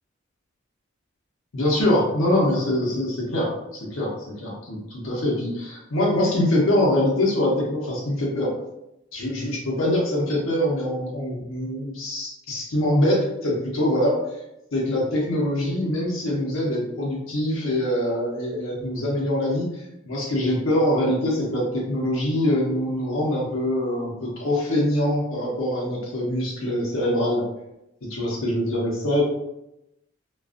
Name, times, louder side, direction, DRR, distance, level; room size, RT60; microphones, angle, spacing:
voice 1, 1.5-8.5 9.1-14.2 14.7-27.4 28.1-29.2, left 1 dB, 80° left, -3 dB, 0.6 m, -24 dB
2.4 x 2.2 x 2.4 m, 0.89 s
head